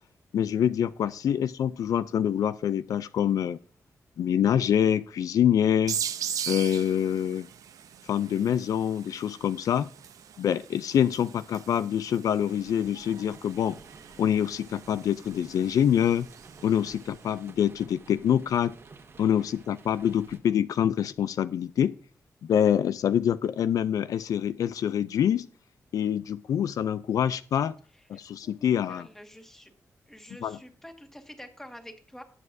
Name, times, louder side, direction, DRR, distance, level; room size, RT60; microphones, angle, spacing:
voice 1, 0.3-3.6 4.2-6.0 6.5-7.5 8.1-9.9 10.4-13.8 14.2-16.3 16.6-18.7 19.2-21.9 22.5-25.5 25.9-27.7 28.1-29.1 30.4-30.6, left 9 dB, 85° left, 15 dB, 0.4 m, -25 dB
sound 1, 5.9-17.2, right 8 dB, 90° right, 0.6 m, -40 dB
sound 2, 12.4-20.4, right 4 dB, 50° right, 1.4 m, -52 dB
voice 2, 27.9-29.7 30.1-32.2, equal, 5° left, 5 dB, 1.7 m, -48 dB
18.5 x 7.5 x 2.6 m, 0.43 s
wide cardioid pair, 130°, 6 cm